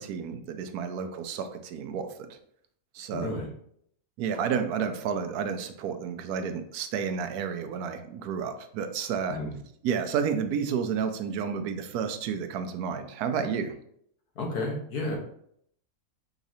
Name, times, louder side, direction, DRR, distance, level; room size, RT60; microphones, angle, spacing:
voice 1, 0.0-2.4 2.9-3.4 4.2-9.4 9.8-13.7, right 7 dB, 90° right, 8 dB, 1.1 m, -31 dB
voice 2, 3.1-3.5 9.3-9.5 14.4-15.2, left 2 dB, 90° left, 0 dB, 1.6 m, -32 dB
5.0 x 4.0 x 2.7 m, 0.68 s
omnidirectional pair, 1.6 m